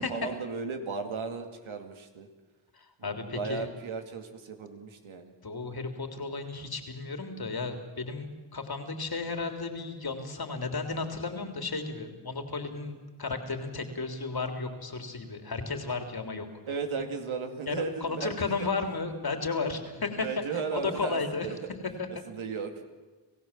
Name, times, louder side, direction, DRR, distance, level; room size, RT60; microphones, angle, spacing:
voice 1, 0.0-2.3 3.0-5.3 16.7-18.3 18.6-18.7 20.2-21.7 22.3-22.8, right 5 dB, 75° right, 5 dB, 2.5 m, -35 dB
voice 2, 2.7-3.7 5.4-16.5 17.7-20.3 20.5-21.5 21.8-22.1, left 4 dB, 50° left, 5 dB, 3.5 m, -34 dB
28.0 x 15.5 x 7.5 m, 1.2 s
supercardioid pair, 45°, 48 cm